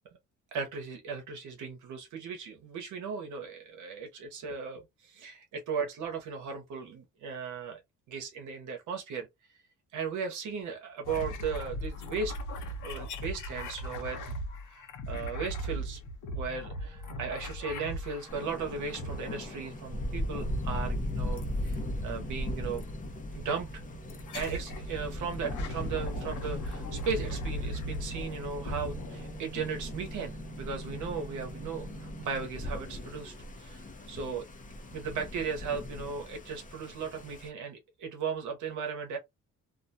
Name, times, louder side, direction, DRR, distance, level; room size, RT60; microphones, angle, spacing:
voice 1, 0.5-7.8 8.1-9.6 9.9-12.4 12.8-14.3 14.7-16.0 16.3-22.8 23.3-23.8 24.3-34.4 34.9-39.2, right 5 dB, 80° right, 0.8 m, -37 dB
sound 1, 11.1-18.5 18.9-19.7 21.4-21.8 22.8-22.9 24.1-24.9 25.3-29.7, equal, 80° left, 0.8 m, -38 dB
sound 2, 16.5-32.5, right 3 dB, 10° right, 0.6 m, -49 dB
Thunder, 18.3-37.5, left 1 dB, 25° left, 0.7 m, -38 dB
2.5 x 2.2 x 2.6 m
cardioid pair, 90°, 30 cm